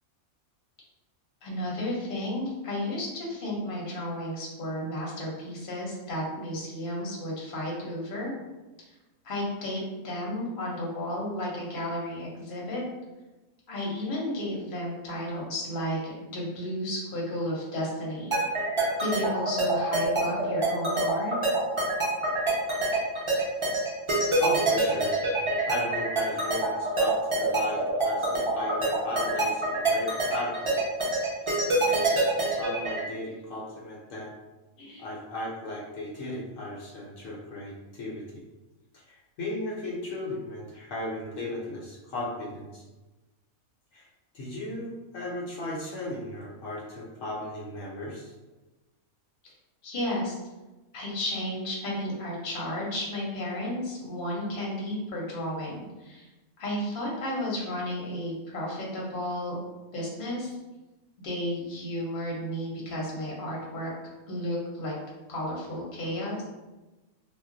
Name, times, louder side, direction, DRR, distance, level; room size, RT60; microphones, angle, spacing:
voice 1, 1.4-8.3 9.2-12.8 13.7-18.3 19.0-21.3 34.8-35.1 49.8-50.4 50.9-56.3 56.6-59.6 59.9-60.6 61.2-63.9 64.3-64.9 65.3-66.4, left 1 dB, 45° left, -4 dB, 0.8 m, -33 dB
sound 1, 18.3-33.0, right 3 dB, 50° right, 0.3 m, -26 dB
voice 2, 24.4-25.1 25.7-30.8 31.4-31.5 31.8-32.2 32.5-34.3 35.0-38.2 38.9-42.8 43.9-44.1 44.3-48.3, left 1 dB, 70° left, -4 dB, 0.9 m, -36 dB
2.4 x 2.0 x 3.7 m, 1.1 s
omnidirectional pair, 1.5 m